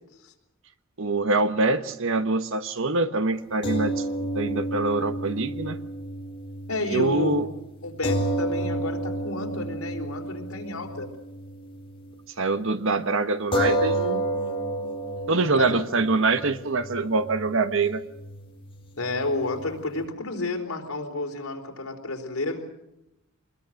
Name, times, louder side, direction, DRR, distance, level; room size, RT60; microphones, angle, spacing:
voice 1, 1.0-4.1 4.3-5.8 6.8-7.5 12.4-14.2 15.3-18.0, right 3 dB, 65° right, 10 dB, 1.2 m, -24 dB
sound 1, 3.6-12.1 12.5-12.6 13.5-20.1, right 1 dB, 25° left, 4.1 m, -31 dB
voice 2, 6.7-7.5 7.8-11.1 15.4-15.8 19.0-22.7, left 2 dB, 80° left, 3 dB, 3.9 m, -31 dB
24.0 x 21.0 x 6.5 m, 0.91 s
head